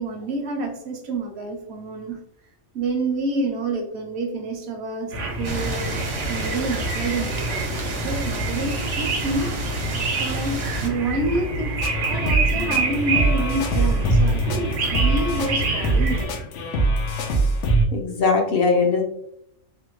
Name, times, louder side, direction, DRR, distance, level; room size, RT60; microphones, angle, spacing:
voice 1, 0.0-2.2 2.7-6.0 6.3-9.5 10.1-11.7 12.0-16.4, right 2 dB, 70° right, 4 dB, 0.8 m, -28 dB
sound 1, 5.1-16.2, right 3 dB, 85° right, 1.0 m, -27 dB
sound 2, 5.4-10.9, right 1 dB, 40° right, 0.4 m, -31 dB
sound 3, 11.8-17.8, right 2 dB, 90° left, 0.9 m, -22 dB
voice 2, 17.9-19.0, left 4 dB, 60° left, 1 dB, 0.7 m, -20 dB
3.3 x 2.2 x 2.9 m, 0.76 s
omnidirectional pair, 1.2 m